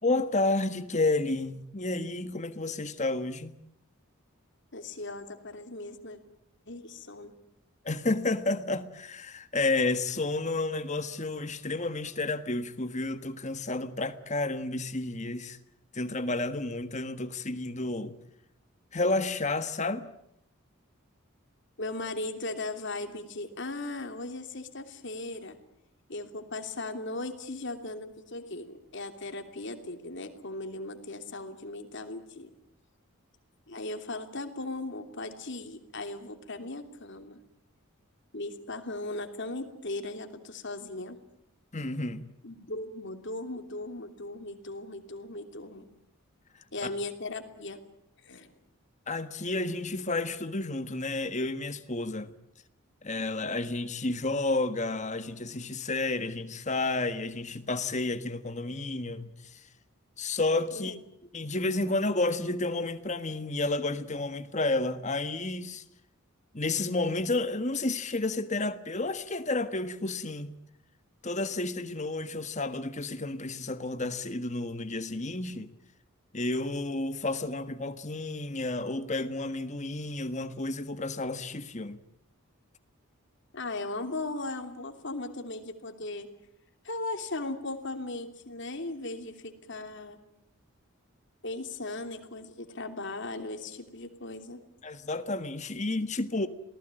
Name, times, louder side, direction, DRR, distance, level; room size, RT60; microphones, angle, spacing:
voice 1, 0.0-3.5 7.8-15.6 15.9-18.2 18.9-20.1 41.7-42.3 49.1-52.3 53.0-59.6 60.2-61.0 61.3-65.8 66.5-70.5 71.2-75.7 76.3-82.0 94.8-96.5, left 2 dB, 35° left, 1.5 m, -31 dB
voice 2, 4.7-6.2 6.7-7.3 21.8-25.6 26.1-32.5 33.7-37.4 38.3-41.2 42.4-45.9 46.7-47.8 48.2-48.5 60.7-61.0 83.5-86.3 86.8-90.2 91.4-94.6, left 2 dB, 55° left, 3.0 m, -38 dB
28.0 x 19.0 x 9.0 m
head